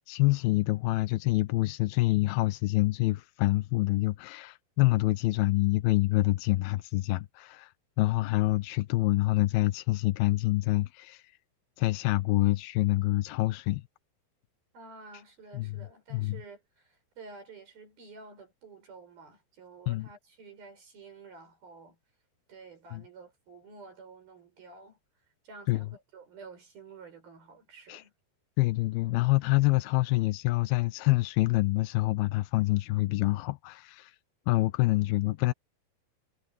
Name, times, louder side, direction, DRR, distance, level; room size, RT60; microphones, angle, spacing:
voice 1, 0.0-7.7 8.0-11.2 11.8-13.8 15.5-16.4 19.9-20.1 22.9-23.0 25.7-25.9 27.9-28.0 28.6-34.2 34.5-35.5, left 19 dB, 80° left, 2.4 m, -26 dB
voice 2, 14.7-22.0 22.5-25.0 25.4-28.1, right 4 dB, 60° right, 8.8 m, -50 dB
omnidirectional pair, 4.9 m